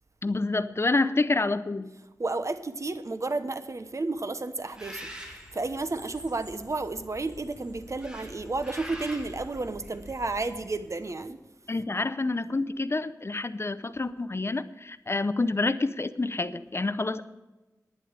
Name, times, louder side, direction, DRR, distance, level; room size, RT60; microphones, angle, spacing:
voice 1, 0.2-1.9 11.7-17.2, left 3 dB, 40° left, 14 dB, 0.6 m, -28 dB
voice 2, 2.2-5.1 5.5-11.4, right 3 dB, 55° right, 11 dB, 1.0 m, -32 dB
Bird, 4.7-11.1, equal, 15° right, 2.6 m, -45 dB
11.0 x 10.5 x 6.6 m, 1.1 s
wide cardioid pair, 60°, 6 cm